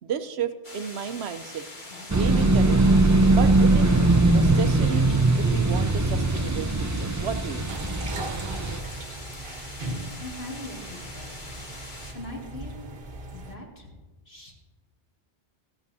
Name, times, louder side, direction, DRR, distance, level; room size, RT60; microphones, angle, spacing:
voice 1, 0.0-1.6 2.1-3.0 3.3-3.9 4.2-5.1 5.4-7.8, right 7 dB, 70° right, 10 dB, 0.9 m, -33 dB
sound 1, 0.6-12.1, left 2 dB, 45° left, 1.8 m, -43 dB
voice 2, 1.9-2.5 10.2-11.6 12.1-12.9 13.3-13.9 14.3-14.5, left 1 dB, 60° left, -1 dB, 2.4 m, -41 dB
sound 2, 2.1-8.8, right 2 dB, 30° right, 0.3 m, -21 dB
water drain from large metal sink gurgle pipe, 7.7-13.5, right 2 dB, 50° right, 1.2 m, -38 dB
15.5 x 14.0 x 2.7 m, 1.2 s
omnidirectional pair, 1.2 m